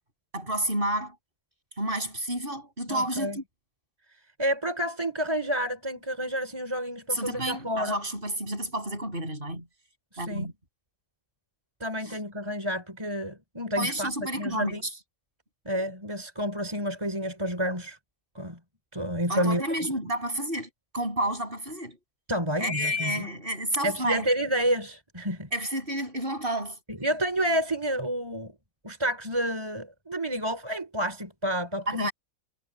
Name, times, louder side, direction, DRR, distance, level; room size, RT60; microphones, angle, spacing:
voice 1, 0.3-1.2 1.8-3.4 7.1-9.7 10.2-10.5 12.1-12.2 13.7-14.9 19.3-22.0 22.6-24.3 25.5-26.8 31.9-32.1, right 1 dB, 40° right, 8.3 m, -30 dB
voice 2, 2.9-3.4 4.4-8.0 10.1-10.5 11.8-14.8 15.6-18.0 18.3-18.6 18.9-19.6 22.3-23.3 23.8-25.5 26.9-28.5 28.8-32.1, equal, 20° right, 4.2 m, -29 dB
omnidirectional pair, 1.4 m